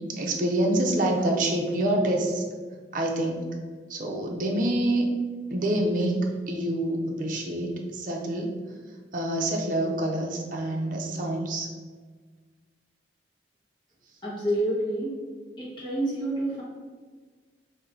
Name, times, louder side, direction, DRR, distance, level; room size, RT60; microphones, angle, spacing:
voice 1, 0.1-2.4 2.9-3.5 3.9-5.1 5.5-8.5 9.1-11.7, right 1 dB, 50° right, 0 dB, 0.7 m, -26 dB
voice 2, 14.2-15.1 15.6-16.6, right 1 dB, 25° left, -7 dB, 1.4 m, -28 dB
3.7 x 2.8 x 4.5 m, 1.5 s
head